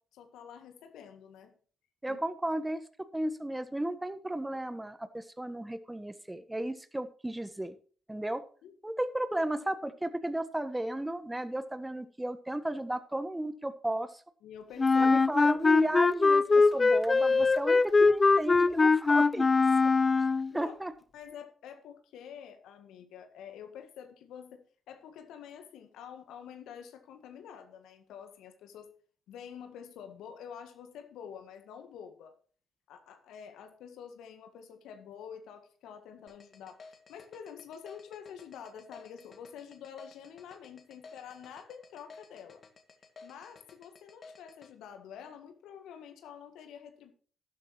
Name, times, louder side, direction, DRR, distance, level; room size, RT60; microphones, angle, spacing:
voice 1, 0.0-1.5 2.1-2.2 8.6-8.8 14.4-15.2 20.5-20.7 21.1-28.9 29.3-32.3 32.9-36.8 37.1-42.6 43.2-47.1, left 8 dB, 70° left, 1.7 m, -48 dB
voice 2, 2.0-2.8 3.1-7.7 8.1-8.4 8.8-14.1 15.0-16.4 16.7-19.5 20.5-20.9, right 1 dB, 15° right, 1.3 m, -34 dB
Wind instrument woodwind instrument, 14.8-20.5, left 4 dB, 35° left, 0.4 m, -22 dB
sound 1, 36.3-44.7, left 4 dB, 50° left, 2.1 m, -53 dB
13.0 x 12.0 x 3.1 m
hypercardioid pair, 45°, 0 cm